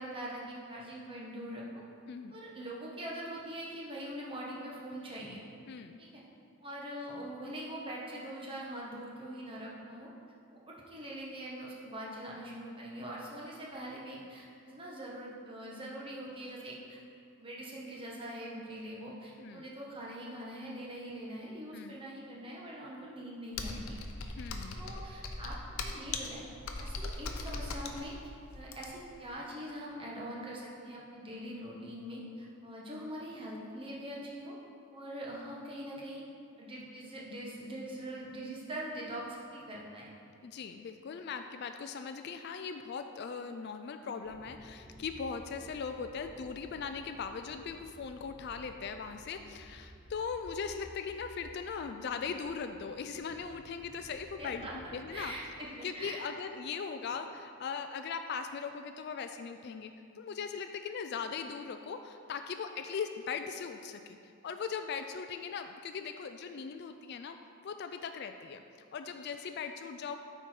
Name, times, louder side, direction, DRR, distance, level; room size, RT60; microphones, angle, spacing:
voice 1, 0.0-1.6 2.3-5.4 6.0-6.2 6.6-10.1 10.7-17.0 17.4-24.0 24.7-26.4 26.8-28.2 28.5-34.6 34.9-36.2 36.6-40.1 54.4-56.3 57.1-57.2, right 1 dB, 25° right, -4 dB, 1.2 m, -43 dB
voice 2, 5.7-6.0 19.4-19.7 21.7-22.0 24.3-24.8 40.4-55.3 55.8-68.6 68.9-70.2, left 6 dB, 50° left, 8 dB, 0.3 m, -39 dB
Computer keyboard, 23.5-29.2, left 3 dB, 75° left, 0.7 m, -39 dB
sound 1, 44.2-55.4, equal, 25° left, 1.1 m, -55 dB
9.2 x 4.6 x 4.4 m, 2.4 s
head